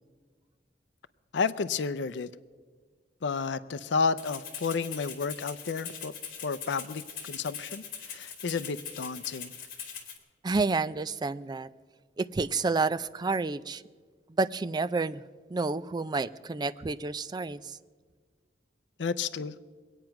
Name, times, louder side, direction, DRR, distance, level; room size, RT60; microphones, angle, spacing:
voice 1, 1.3-2.3 3.2-6.1 6.4-9.5 19.0-19.6, left 5 dB, 80° left, 16 dB, 0.5 m, -31 dB
Rattle (instrument), 4.2-10.2, left 7 dB, 55° left, 2.1 m, -41 dB
voice 2, 10.4-11.7 12.2-13.8 14.3-15.2 15.5-17.8, right 3 dB, 25° right, 14 dB, 0.4 m, -29 dB
23.0 x 9.0 x 5.8 m, 1.5 s
head